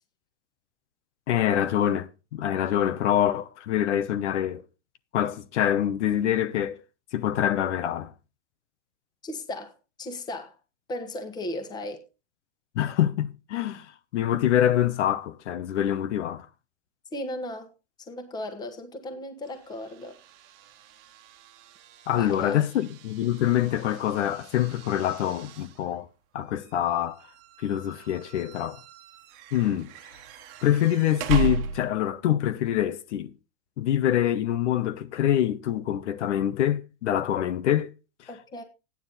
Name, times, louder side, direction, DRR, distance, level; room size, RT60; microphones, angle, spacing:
voice 1, 1.3-4.6 5.1-6.8 7.1-8.1 12.7-13.9 14.1-16.5 22.1-26.1 26.3-27.2 27.6-28.8 29.5-29.9 30.6-33.3 33.8-37.9, left 11 dB, 70° left, 1.1 m, -25 dB
voice 2, 9.2-10.5 10.9-12.1 17.1-17.7 18.0-20.2 22.1-22.6 38.3-38.6, left 1 dB, 10° left, 1.4 m, -36 dB
sound 1, 19.4-32.2, right 7 dB, 30° right, 1.4 m, -38 dB
13.0 x 9.7 x 4.1 m
supercardioid pair, 170°, 36 cm